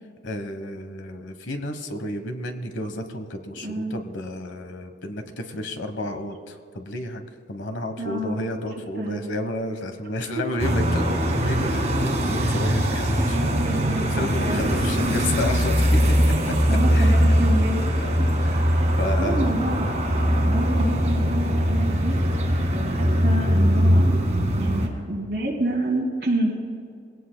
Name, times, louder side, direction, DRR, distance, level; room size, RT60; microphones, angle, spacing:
voice 1, 0.2-7.2 7.5-13.5 14.1-16.0 16.5-16.6 16.9-17.3 18.0-18.6 19.0-19.5 20.3-20.6, left 1 dB, 90° left, 7 dB, 1.2 m, -31 dB
voice 2, 3.6-4.0 8.0-8.5 9.0-9.3 10.2-10.3 12.4-12.6 13.2-14.8 16.7-17.8 18.6-19.9 20.4-22.2 22.7-24.1 24.6-26.6, right 1 dB, 60° right, 0 dB, 2.5 m, -28 dB
sound 1, 10.6-24.9, equal, 40° right, 2.0 m, -21 dB
22.0 x 17.5 x 2.3 m, 2.3 s
head